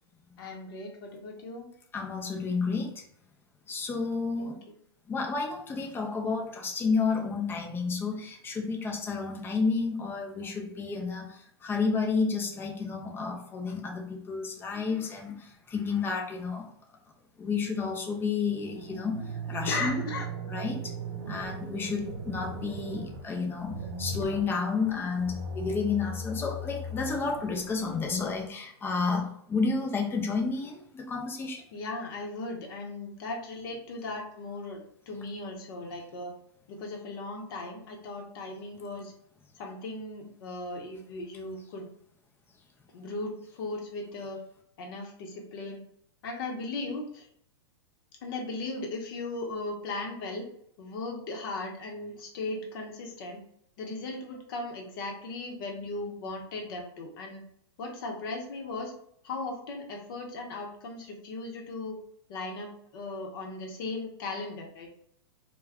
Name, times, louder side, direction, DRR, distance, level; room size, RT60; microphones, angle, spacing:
voice 1, 0.4-1.7 4.4-4.6 19.7-20.3 31.7-36.3 36.7-39.1 39.5-41.9 42.9-44.4 44.8-45.8 46.2-47.3 48.2-50.4 50.8-53.4 53.8-57.4 57.8-58.9 59.2-62.0 62.3-64.9, left 2 dB, 55° left, 1 dB, 0.8 m, -37 dB
voice 2, 1.9-2.9 3.7-4.5 5.1-16.7 17.4-19.2 19.5-20.0 20.5-20.8 21.3-31.6, left 4 dB, 15° left, 0 dB, 0.5 m, -31 dB
sound 1, 18.5-28.5, right 2 dB, 60° right, 0.5 m, -39 dB
2.2 x 2.2 x 3.5 m, 0.69 s
hypercardioid pair, 125°, 14 cm